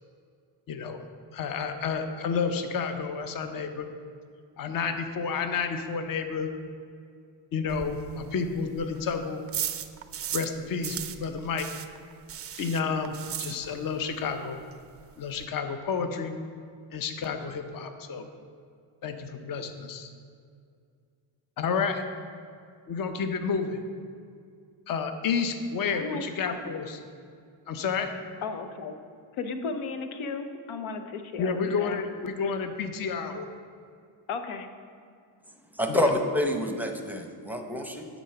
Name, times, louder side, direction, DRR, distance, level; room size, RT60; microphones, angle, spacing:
voice 1, 0.7-1.0 1.3-3.9 4.6-6.5 7.5-9.4 10.3-11.7 12.5-14.6 15.2-16.3 16.9-18.3 19.0-20.1 21.6-22.0 22.9-23.8 24.9-27.0 27.7-28.1 31.4-33.5 35.9-36.1, left 5 dB, 45° left, 7 dB, 0.7 m, -30 dB
sound 1, 7.7-10.6 10.8-14.0 14.3-14.4 14.7-14.8 15.0-15.5, right 9 dB, 30° right, 0.4 m, -36 dB
voice 2, 25.9-26.2 28.4-28.9 29.3-32.0 34.3-34.7, left 4 dB, 90° left, 8 dB, 0.8 m, -34 dB
voice 3, 35.8-38.1, left 1 dB, 5° right, 4 dB, 0.7 m, -27 dB
10.0 x 4.0 x 5.6 m, 2.2 s
cardioid pair, 95°, 48 cm